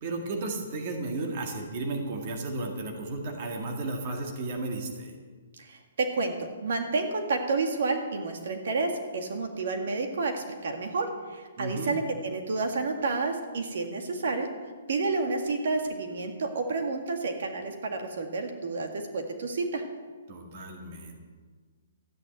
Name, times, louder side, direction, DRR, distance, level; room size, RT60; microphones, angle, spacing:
voice 1, 0.0-5.2 11.6-11.9 20.3-21.2, right 2 dB, 25° right, 2 dB, 2.0 m, -34 dB
voice 2, 5.6-14.5 14.9-19.8, right 3 dB, 50° right, 4 dB, 1.9 m, -30 dB
13.5 x 9.9 x 9.1 m, 1.5 s
hypercardioid pair, 180°, 0 cm